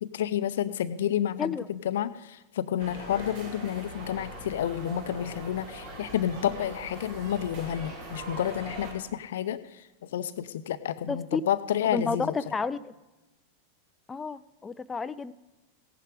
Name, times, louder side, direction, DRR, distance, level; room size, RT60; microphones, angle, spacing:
voice 1, 0.0-12.3, left 10 dB, 60° left, 13 dB, 0.6 m, -30 dB
sound 1, 2.8-8.9, right 1 dB, 55° right, 3.1 m, -41 dB
voice 2, 11.1-11.4 11.9-12.9 14.1-15.3, left 4 dB, 15° left, 14 dB, 0.4 m, -31 dB
16.5 x 10.5 x 5.0 m, 1.1 s
figure-of-eight pair, 90°, 0 cm